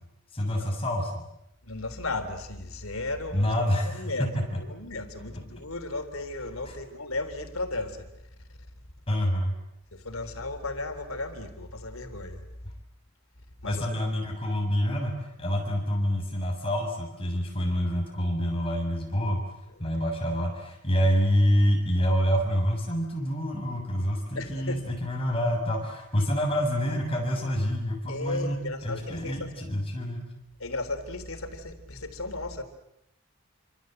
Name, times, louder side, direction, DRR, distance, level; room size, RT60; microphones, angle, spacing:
voice 1, 0.3-1.2 3.3-4.4 6.7-6.8 9.1-9.6 13.7-19.4 19.8-30.3, equal, 25° left, 1 dB, 7.2 m, -27 dB
voice 2, 1.6-3.7 3.9-8.2 9.9-12.5 13.6-13.9 19.8-19.9 24.4-24.9 28.1-29.5 30.6-32.6, left 2 dB, 90° left, 8 dB, 3.6 m, -35 dB
28.5 x 26.0 x 7.9 m, 0.83 s
head